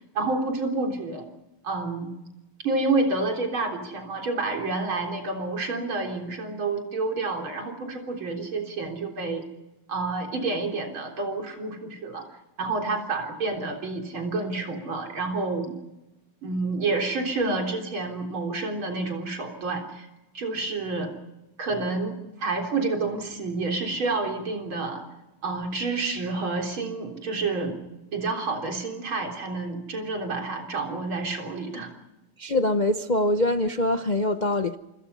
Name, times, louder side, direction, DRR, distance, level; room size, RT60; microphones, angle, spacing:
voice 1, 0.1-1.3 1.6-2.1 2.6-9.4 9.9-12.2 12.6-15.8 16.4-20.1 20.3-21.1 21.6-25.0 25.4-27.8 28.1-31.9, right 3 dB, 70° right, 4.4 m, -29 dB
voice 2, 32.4-34.8, left 1 dB, 65° left, 0.4 m, -24 dB
28.5 x 26.0 x 5.6 m
omnidirectional pair, 2.3 m